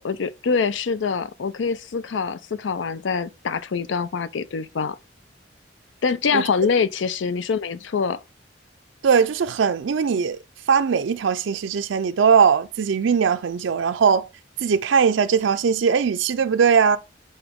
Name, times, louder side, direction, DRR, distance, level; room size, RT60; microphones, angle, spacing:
voice 1, 0.0-5.0 6.0-8.2, left 5 dB, 80° left, 0.5 m, -24 dB
voice 2, 9.0-10.4 10.7-14.3 14.6-17.0, right 6 dB, 85° right, 0.4 m, -20 dB
7.8 x 3.9 x 3.6 m
head